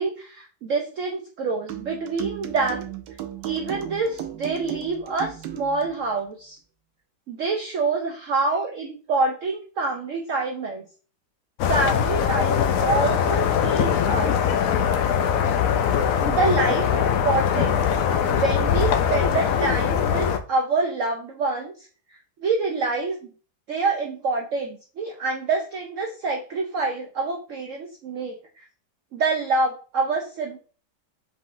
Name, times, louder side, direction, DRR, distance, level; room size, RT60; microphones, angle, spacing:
voice 1, 0.0-2.8 3.4-6.6 7.3-10.8 11.7-14.4 16.2-17.9 18.3-21.7 22.4-23.3 23.7-28.6 29.1-30.6, right 3 dB, 65° right, 2 dB, 0.8 m, -26 dB
sound 1, 1.7-6.0, right 12 dB, 80° right, 1.2 m, -35 dB
sound 2, 11.6-20.4, left 8 dB, 70° left, 0.8 m, -22 dB
5.0 x 3.6 x 2.5 m, 0.39 s
omnidirectional pair, 1.9 m